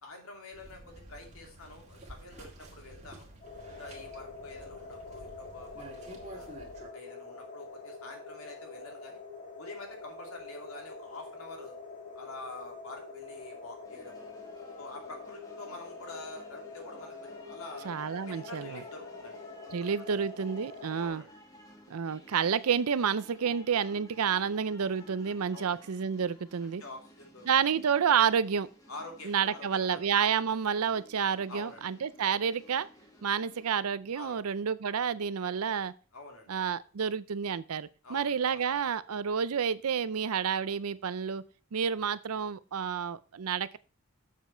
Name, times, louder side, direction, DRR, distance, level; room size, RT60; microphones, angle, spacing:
voice 1, 0.0-3.3 3.7-6.5 6.9-9.2 9.6-11.8 12.1-14.3 14.8-17.9 18.3-19.5 21.0-21.3 25.5-25.8 26.6-27.5 28.9-30.1 31.5-31.9 34.1-34.4 36.1-36.5 38.0-38.6, left 2 dB, 75° left, 1 dB, 2.6 m, -47 dB
sound 1, 0.5-6.9, right 1 dB, 30° right, 1.9 m, -50 dB
sound 2, 3.4-21.1, left 3 dB, 35° left, 3.5 m, -46 dB
sound 3, 13.8-33.7, left 1 dB, 15° left, 1.3 m, -56 dB
voice 2, 17.8-18.8 19.7-21.2 21.9-26.8 27.5-28.7 29.2-32.9 33.2-35.9 36.5-41.4 41.7-43.8, right 7 dB, 85° right, 16 dB, 0.5 m, -29 dB
7.5 x 7.3 x 4.4 m, 0.37 s
head